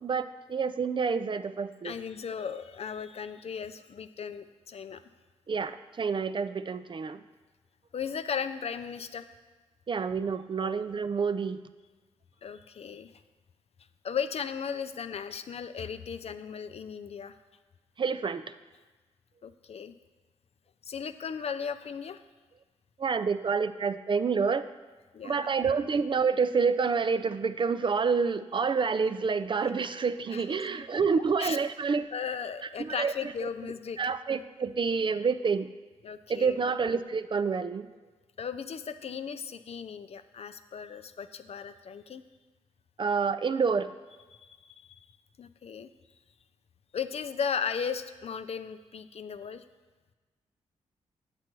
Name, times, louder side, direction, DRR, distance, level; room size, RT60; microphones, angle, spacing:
voice 1, 0.0-2.0 5.5-7.2 9.9-11.6 18.0-18.4 23.0-24.7 25.2-32.1 32.8-33.1 34.0-35.7 36.3-37.9 43.0-43.9, right 5 dB, 40° right, 12 dB, 0.4 m, -28 dB
voice 2, 1.8-5.0 7.9-9.2 12.4-13.1 14.0-17.4 19.4-19.9 20.9-22.2 25.1-25.5 30.3-30.7 31.2-31.6 32.1-34.0 36.0-36.6 38.4-42.2 44.3-44.9 45.4-45.9 46.9-49.6, left 6 dB, 50° left, 10 dB, 0.4 m, -36 dB
8.2 x 7.6 x 3.0 m, 1.3 s
supercardioid pair, 45°, 13 cm